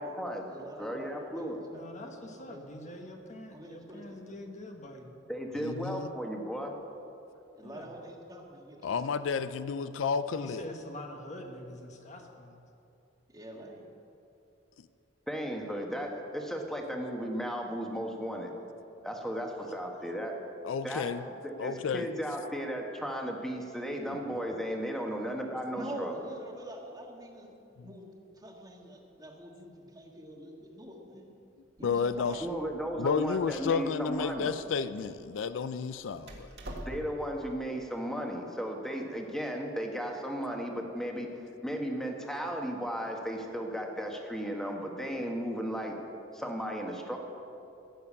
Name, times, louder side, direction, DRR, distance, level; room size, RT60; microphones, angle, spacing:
voice 1, 0.0-0.4 0.8-1.6 5.3-6.7 15.3-18.5 19.0-20.4 20.8-21.1 21.4-26.1 32.4-34.5 36.8-41.3 41.6-45.9 46.3-47.2, equal, 5° left, 1 dB, 1.4 m, -35 dB
voice 2, 0.5-2.6 3.5-4.4 7.6-9.0 13.3-13.9 25.8-27.6 27.8-31.3 31.8-32.5, right 1 dB, 20° right, 1 dB, 1.6 m, -45 dB
voice 3, 1.7-5.1 7.6-7.9 10.3-12.6 19.5-20.1, left 1 dB, 40° left, 3 dB, 1.3 m, -45 dB
voice 4, 5.6-6.1 8.8-10.6 20.6-21.2 21.6-22.1 27.8-27.9 31.8-32.5 33.0-36.5, left 5 dB, 80° left, 13 dB, 0.4 m, -31 dB
Door, 31.8-37.4, right 1 dB, 60° right, 1.9 m, -48 dB
15.0 x 6.9 x 8.5 m, 2.8 s
head